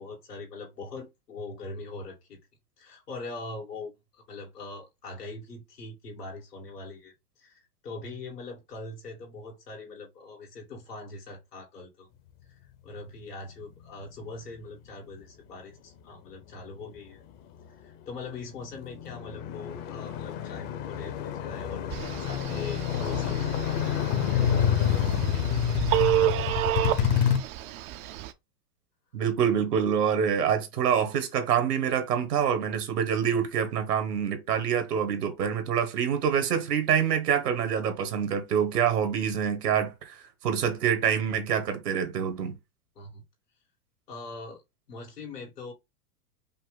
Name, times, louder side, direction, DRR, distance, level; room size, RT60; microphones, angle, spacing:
voice 1, 0.0-2.4 2.8-12.1 12.5-17.2 17.7-23.4 23.8-26.3 42.9-43.2 44.1-44.6 44.9-45.7, left 3 dB, 90° left, 2.5 m, -42 dB
sound 1, 18.1-18.2 18.5-27.4, left 9 dB, 45° left, 0.9 m, -28 dB
Telephone, 21.9-28.3, right 13 dB, 30° right, 0.4 m, -30 dB
voice 2, 29.1-42.5, right 8 dB, 80° right, 1.4 m, -26 dB
5.3 x 2.2 x 3.8 m
hypercardioid pair, 105°, 46 cm